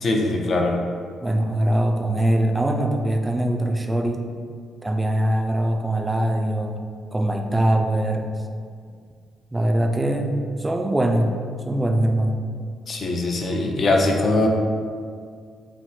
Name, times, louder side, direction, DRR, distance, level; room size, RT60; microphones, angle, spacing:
voice 1, 0.0-0.8 12.9-14.5, left 2 dB, 45° left, 1 dB, 0.4 m, -21 dB
voice 2, 1.2-4.2 4.8-6.8 7.1-8.3 9.5-11.4 11.6-12.4, right 1 dB, 15° right, 3 dB, 0.3 m, -22 dB
2.9 x 2.1 x 3.4 m, 2.1 s
hypercardioid pair, 45°, 0 cm